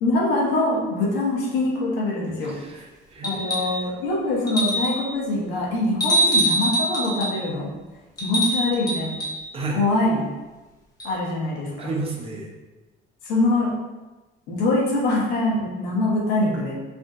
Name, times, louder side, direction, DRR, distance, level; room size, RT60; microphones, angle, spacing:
voice 1, 0.0-2.6 3.2-7.7 8.2-9.2 9.7-10.3 11.0-11.9 13.2-13.8 14.5-16.8, left 2 dB, 85° left, -3 dB, 0.9 m, -23 dB
voice 2, 2.4-3.9 9.5-9.9 11.8-12.5, right 3 dB, 30° right, -1 dB, 0.5 m, -32 dB
sound 1, 3.2-3.8 4.5-5.1 6.0-7.4 8.2-9.4 11.0-11.1, equal, 20° left, 0.7 m, -23 dB
3.4 x 2.5 x 2.4 m, 1.2 s
cardioid pair, 125°, 20 cm